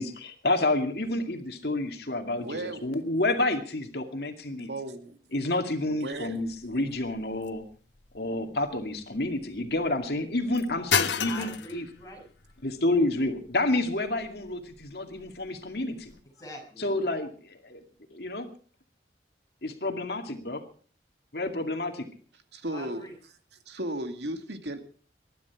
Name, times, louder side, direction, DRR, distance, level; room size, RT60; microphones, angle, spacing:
voice 1, 0.0-4.7 5.3-7.6 8.1-11.8 12.6-16.1 16.8-17.8 18.1-18.5 19.6-20.6 21.3-22.1, left 2 dB, 65° left, 5 dB, 2.3 m, -29 dB
voice 2, 2.4-2.9 4.6-5.2 5.8-6.4 22.5-23.1 23.7-24.8, right 1 dB, 75° right, 8 dB, 2.2 m, -35 dB
sound 1, 6.1-16.2, left 7 dB, 85° left, 1.2 m, -36 dB
voice 3, 11.2-12.6 16.2-16.8 22.7-23.1, left 1 dB, 20° left, 0 dB, 6.3 m, -43 dB
21.0 x 13.0 x 4.8 m, 0.42 s
head